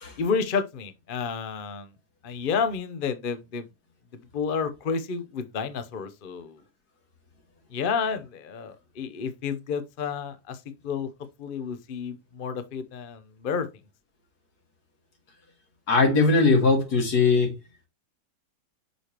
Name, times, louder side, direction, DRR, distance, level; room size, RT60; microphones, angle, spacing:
voice 1, 0.2-1.9 2.2-3.7 4.3-6.6 7.7-11.1 11.4-13.7, left 6 dB, 45° left, 0.7 m, -30 dB
voice 2, 15.9-17.6, left 3 dB, 70° left, 2.2 m, -20 dB
6.5 x 4.9 x 2.9 m
omnidirectional pair, 1.8 m